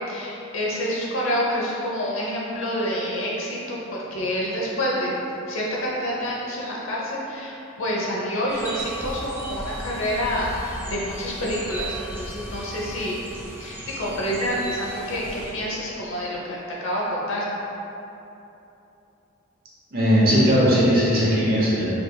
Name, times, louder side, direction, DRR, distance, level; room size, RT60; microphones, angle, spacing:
voice 1, 0.1-5.1 5.5-13.2 13.6-17.4, equal, 70° left, -4 dB, 0.8 m, -28 dB
sound 1, 8.5-15.5, right 1 dB, 10° right, 0.4 m, -36 dB
voice 2, 19.9-21.8, equal, 50° right, -7 dB, 0.9 m, -18 dB
3.9 x 3.4 x 2.3 m, 2.9 s
head